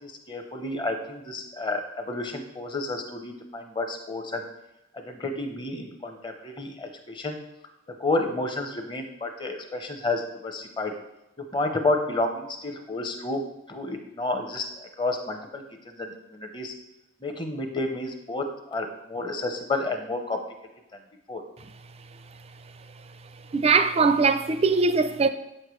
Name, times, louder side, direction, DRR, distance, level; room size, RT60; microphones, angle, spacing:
voice 1, 0.0-4.5 4.9-7.4 8.0-10.9 11.5-13.4 13.7-16.7 17.2-20.4 21.3-21.4, left 2 dB, 25° left, 0.8 m, -30 dB
voice 2, 23.5-25.3, right 4 dB, 30° right, 0.4 m, -21 dB
7.9 x 6.5 x 3.1 m
head